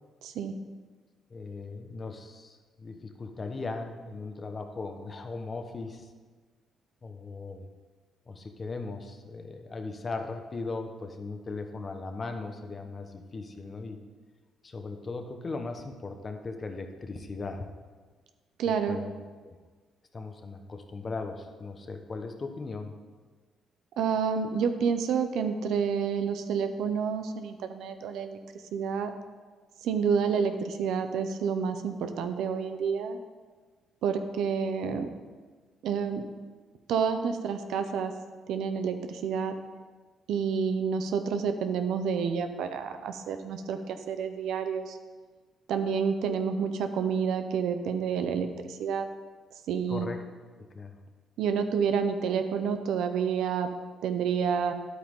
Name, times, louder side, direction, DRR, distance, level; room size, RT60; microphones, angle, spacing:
voice 1, 0.2-0.6 18.6-19.0 24.0-28.4 28.7-29.1 29.8-33.2 34.0-35.1 35.8-36.2 36.9-38.1 38.5-39.5 40.3-45.0 45.7-49.1 49.7-50.1 51.4-53.7 54.0-54.7, right 6 dB, 80° right, 8 dB, 0.7 m, -29 dB
voice 2, 1.3-6.1 7.0-7.7 8.3-14.0 14.6-17.7 18.6-19.1 19.4-19.6 20.1-22.9 49.9-50.2 50.6-51.0, left 3 dB, 35° left, 6 dB, 1.0 m, -38 dB
10.5 x 8.3 x 3.8 m, 1.4 s
cardioid pair, 90°, 0 cm